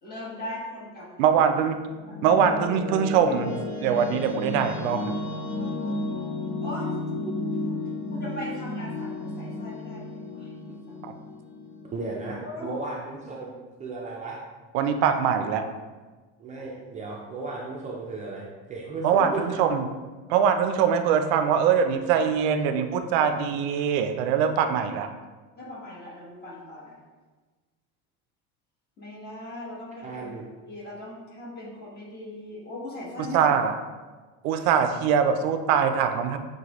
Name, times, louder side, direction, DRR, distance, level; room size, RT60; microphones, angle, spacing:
voice 1, 0.0-1.4 2.1-2.2 6.6-6.9 7.6-10.5 10.9-11.0 12.4-12.7 25.5-27.0 29.0-30.3 30.6-33.5, left 1 dB, 30° left, -5 dB, 1.2 m, -39 dB
voice 2, 1.2-1.8 2.2-3.5 3.8-5.2 11.0-11.1 14.7-15.6 19.0-19.9 20.3-25.1 33.3-33.8 34.4-36.4, right 7 dB, 90° right, 7 dB, 0.5 m, -22 dB
sound 1, 1.8-12.6, left 2 dB, 60° left, 0.8 m, -33 dB
voice 3, 11.9-13.5 13.8-14.4 16.4-19.6 30.0-30.4, right 3 dB, 25° right, -3 dB, 0.4 m, -35 dB
6.4 x 2.2 x 2.9 m, 1.3 s
cardioid pair, 140°, 32 cm